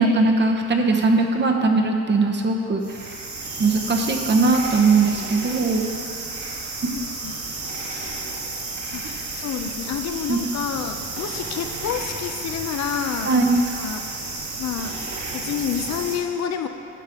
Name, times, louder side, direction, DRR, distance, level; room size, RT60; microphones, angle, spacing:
voice 1, 0.0-2.8 3.6-5.9 10.3-10.4 13.2-13.6, right 3 dB, 35° right, 2 dB, 1.0 m, -19 dB
sound 1, 2.8-16.2, right 3 dB, 70° right, 2.1 m, -32 dB
voice 2, 6.9-7.3 8.9-14.0 14.6-14.9 15.3-16.7, left 8 dB, 60° left, 7 dB, 0.6 m, -29 dB
11.5 x 7.3 x 3.7 m, 2.7 s
cardioid pair, 90°, 30 cm